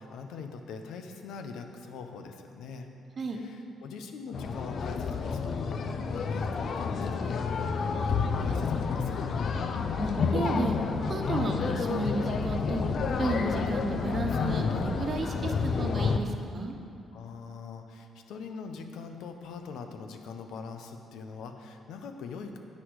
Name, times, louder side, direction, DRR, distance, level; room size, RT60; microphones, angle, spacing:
voice 1, 0.0-2.9 3.3-9.2 17.1-22.6, left 5 dB, 85° left, 6 dB, 0.9 m, -42 dB
sound 1, 4.3-16.2, left 5 dB, 55° left, 0.6 m, -29 dB
voice 2, 9.8-10.8 11.1-12.8 13.2-16.7, right 2 dB, 45° right, 3 dB, 1.1 m, -32 dB
9.8 x 8.5 x 4.8 m, 2.5 s
cardioid pair, 90°, 0 cm